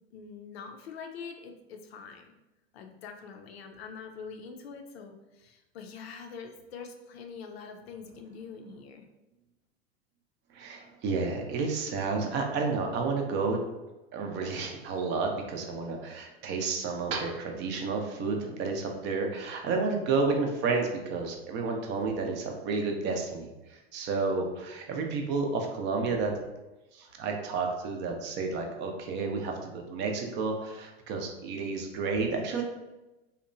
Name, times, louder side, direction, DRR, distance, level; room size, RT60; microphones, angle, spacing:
voice 1, 0.1-2.3 2.7-9.1, left 5 dB, 75° left, 5 dB, 0.5 m, -44 dB
voice 2, 10.5-13.7 14.1-26.4 26.9-32.6, right 4 dB, 35° right, 2 dB, 0.5 m, -31 dB
2.8 x 2.1 x 2.5 m, 1.0 s
hypercardioid pair, 100°, 32 cm